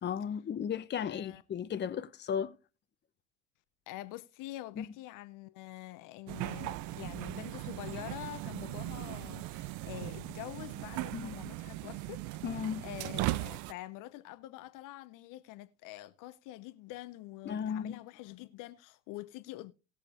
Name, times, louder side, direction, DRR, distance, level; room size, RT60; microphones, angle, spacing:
voice 1, 0.0-2.5 4.8-4.9 11.1-11.4 12.4-12.8 17.4-18.0, left 8 dB, 30° left, 0.8 m, -35 dB
voice 2, 1.0-1.4 3.9-12.2 12.5-19.7, left 16 dB, 60° left, 0.8 m, -46 dB
sound 1, 6.3-13.7, right 18 dB, 55° right, 0.5 m, -38 dB
19.0 x 6.6 x 2.6 m
hypercardioid pair, 60°, 37 cm